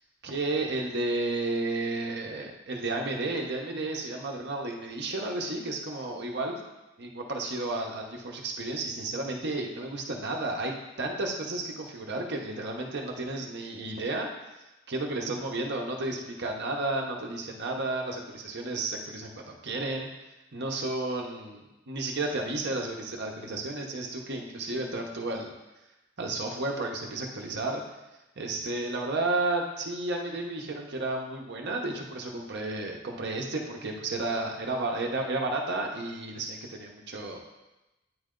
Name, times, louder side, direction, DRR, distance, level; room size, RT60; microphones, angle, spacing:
voice 1, 0.2-6.6 7.0-14.3 14.9-20.1 20.5-25.5 26.2-27.8 28.4-37.4, right 2 dB, 60° right, 1 dB, 0.9 m, -32 dB
9.4 x 3.3 x 3.8 m, 1.0 s
head